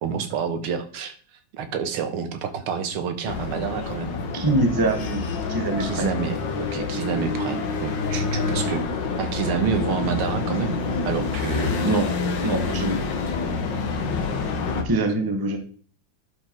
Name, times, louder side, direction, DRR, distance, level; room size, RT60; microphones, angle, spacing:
voice 1, 0.0-4.2 5.8-8.9 9.2-10.8 11.1-11.8, right 7 dB, 80° right, 8 dB, 2.0 m, -28 dB
sound 1, 3.3-14.8, left 4 dB, 60° left, 1.7 m, -27 dB
voice 2, 4.3-5.2 5.5-6.1 11.8-12.1 12.4-13.0 14.8-15.6, right 2 dB, 15° right, 5 dB, 0.7 m, -23 dB
11.0 x 4.7 x 4.5 m, 0.43 s
omnidirectional pair, 2.4 m